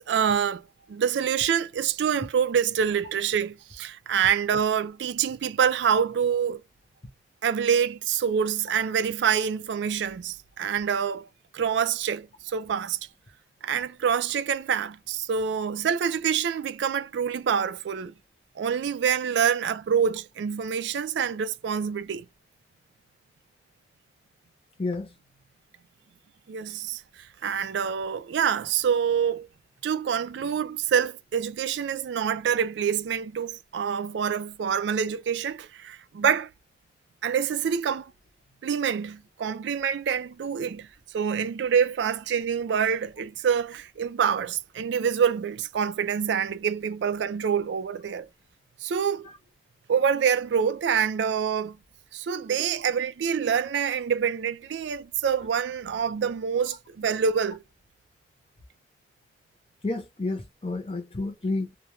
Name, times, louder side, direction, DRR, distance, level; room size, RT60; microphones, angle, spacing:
voice 1, 0.0-6.6 7.4-11.3 11.5-13.0 13.6-18.1 18.6-22.3 26.5-29.5 29.8-36.5 37.2-38.1 38.6-40.9 41.1-48.3 48.8-49.3 49.9-51.8 52.1-57.6, right 7 dB, 75° right, 0.3 m, -26 dB
voice 2, 24.8-25.1 49.3-49.4 59.8-61.7, left 2 dB, 30° left, 0.7 m, -30 dB
2.3 x 2.2 x 3.0 m
head